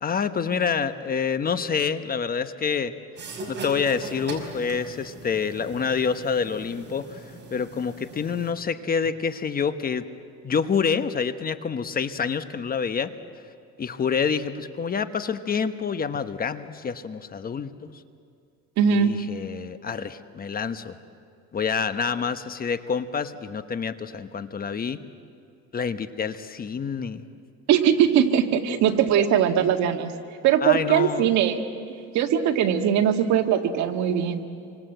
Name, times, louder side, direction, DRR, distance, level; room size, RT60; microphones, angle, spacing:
voice 1, 0.0-2.9 3.5-10.1 10.4-13.1 13.8-17.9 18.9-21.0 21.5-25.0 25.7-27.2 30.6-31.3, left 6 dB, 30° left, 11 dB, 1.1 m, -27 dB
sound 1, 3.2-8.5, right 2 dB, 40° right, 5.7 m, -39 dB
voice 2, 18.8-19.2 27.7-30.1 30.4-31.6 32.1-34.4, right 8 dB, 70° right, 5 dB, 2.0 m, -21 dB
27.5 x 25.0 x 8.0 m, 2.4 s
cardioid pair, 120°, 29 cm